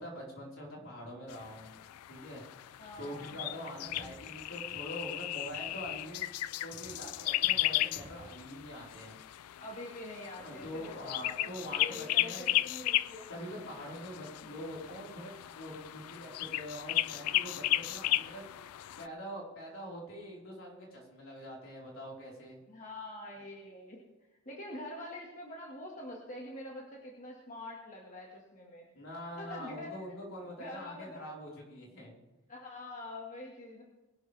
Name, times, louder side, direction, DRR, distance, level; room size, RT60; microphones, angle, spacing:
voice 1, 0.0-1.7 2.1-2.4 3.0-6.2 6.6-9.1 10.4-12.6 13.3-18.7 19.0-22.6 28.9-32.2, equal, 60° left, -3 dB, 4.5 m, -44 dB
sound 1, 1.3-19.1, left 16 dB, 85° left, 0.3 m, -35 dB
voice 2, 2.8-3.8 9.6-11.5 11.8-13.3 14.4-14.5 22.7-24.0 24.5-28.9 29.4-29.9 30.6-31.2 32.5-33.8, left 1 dB, 35° left, -2 dB, 1.9 m, -45 dB
sound 2, 3.8-4.2 4.7-4.9 5.5-6.0 6.7-7.0 7.4-7.7 7.9-8.4, equal, 65° right, 3.4 m, -53 dB
21.5 x 11.5 x 3.5 m, 1.1 s
head